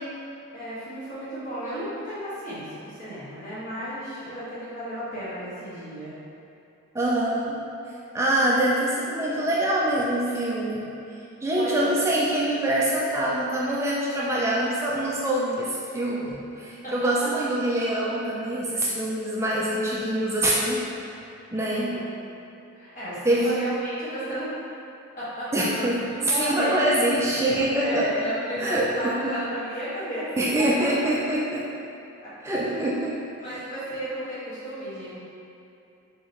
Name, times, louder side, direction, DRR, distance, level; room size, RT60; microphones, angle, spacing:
voice 1, 0.5-6.1 11.6-12.1 16.3-16.4 16.8-16.9 21.5-22.1 22.7-24.7 25.2-26.7 27.8-30.3 32.2-32.9 33.4-35.1, equal, 35° left, -12 dB, 1.5 m, -34 dB
voice 2, 6.9-7.6 8.1-10.9 11.4-20.8 21.5-22.0 23.2-23.6 25.5-26.0 26.4-28.1 28.6-29.4 30.4-31.7 32.4-33.2, right 1 dB, 10° right, -6 dB, 0.3 m, -24 dB
4.0 x 3.7 x 3.0 m, 2.7 s
head